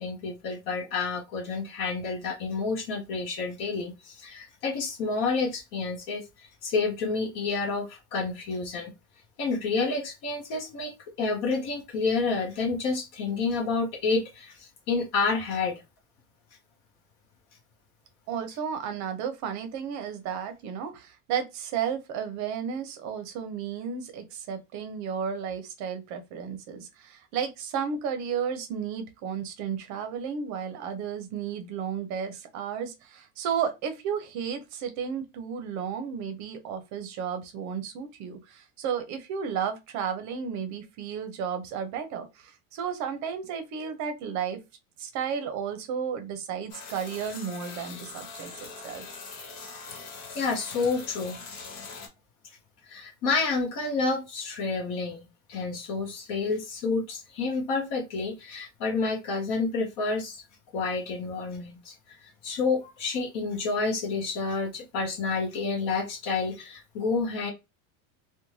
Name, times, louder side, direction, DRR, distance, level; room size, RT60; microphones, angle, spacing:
voice 1, 0.0-6.2 6.6-8.9 9.4-15.8 50.3-51.4 52.8-60.4 60.7-67.5, left 4 dB, 50° left, 0.8 m, -29 dB
voice 2, 18.3-44.6 45.0-49.0, right 7 dB, 45° right, 0.6 m, -33 dB
sound 1, 46.7-52.1, left 4 dB, 65° left, 1.1 m, -42 dB
2.5 x 2.2 x 3.0 m
supercardioid pair, 140°, 41 cm